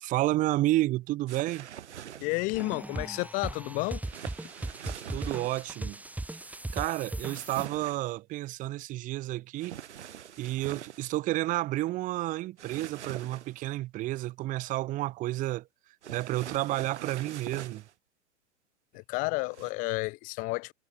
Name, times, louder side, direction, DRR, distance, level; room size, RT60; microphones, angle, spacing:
voice 1, 0.0-1.7 5.1-6.0 6.7-9.8 10.4-15.7 16.1-17.8, right 17 dB, 20° right, 0.7 m, -31 dB
sound 1, 1.3-2.5 4.0-5.7 7.3-8.1 9.6-11.0 12.6-13.7 16.0-17.9 19.5-19.7, right 10 dB, 60° right, 5.4 m, -44 dB
voice 2, 2.2-4.0 18.9-20.7, left 25 dB, 20° left, 0.5 m, -31 dB
sound 2, 2.5-7.7, right 2 dB, 5° right, 2.1 m, -38 dB
figure-of-eight pair, 100°, 38 cm